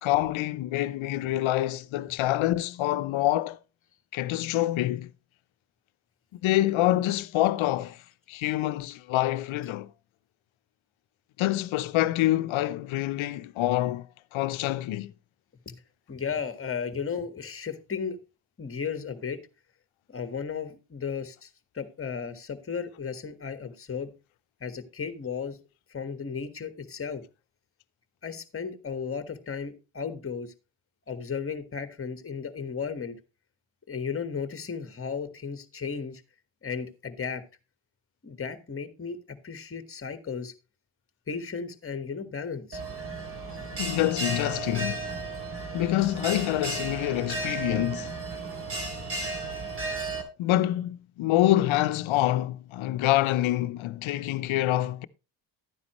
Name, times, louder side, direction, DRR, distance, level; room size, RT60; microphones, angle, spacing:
voice 1, 0.0-3.6 4.1-5.1 6.4-8.0 8.3-9.9 11.4-14.1 14.3-15.1 43.8-45.1 45.7-48.2 50.4-55.1, left 15 dB, 75° left, 0.8 m, -26 dB
voice 2, 16.1-18.2 18.6-19.4 20.1-24.1 24.6-25.6 25.9-27.2 28.2-30.5 31.1-33.2 33.9-36.2 36.6-37.4 38.2-40.5 41.3-42.8, left 6 dB, 25° left, 1.5 m, -35 dB
Bell, 42.7-50.2, right 3 dB, 25° right, 2.9 m, -34 dB
12.5 x 9.6 x 3.0 m
cardioid pair, 100°, 48 cm